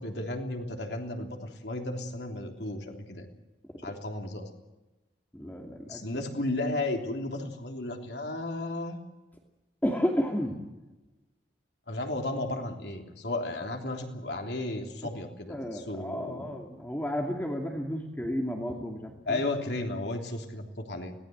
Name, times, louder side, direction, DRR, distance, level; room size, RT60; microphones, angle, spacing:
voice 1, 0.0-3.3 3.8-4.5 5.9-9.0 11.9-16.5 19.3-21.1, left 2 dB, 70° left, 3 dB, 3.4 m, -34 dB
voice 2, 5.3-6.0 9.8-10.6 15.0-15.1 15.5-19.4, equal, 10° left, 1 dB, 2.5 m, -32 dB
24.5 x 19.0 x 7.9 m, 1.1 s
head